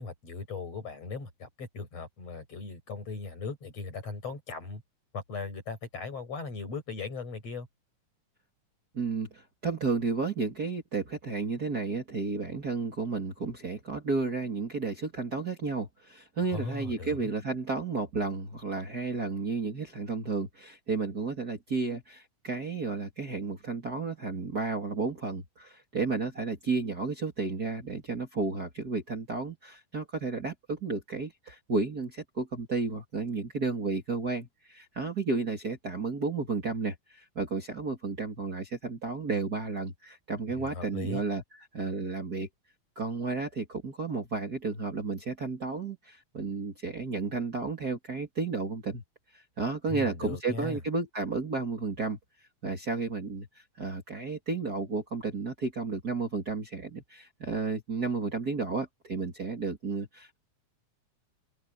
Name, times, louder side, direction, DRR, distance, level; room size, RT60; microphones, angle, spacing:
voice 1, 0.0-4.8 5.1-7.7 16.5-17.3 40.6-41.2 49.9-50.8, left 4 dB, 55° left, 7.3 m, -38 dB
voice 2, 8.9-41.4 41.7-42.5 43.0-49.0 49.3-52.2 52.6-60.4, right 4 dB, 30° right, 2.8 m, -32 dB
open air
omnidirectional pair, 3.5 m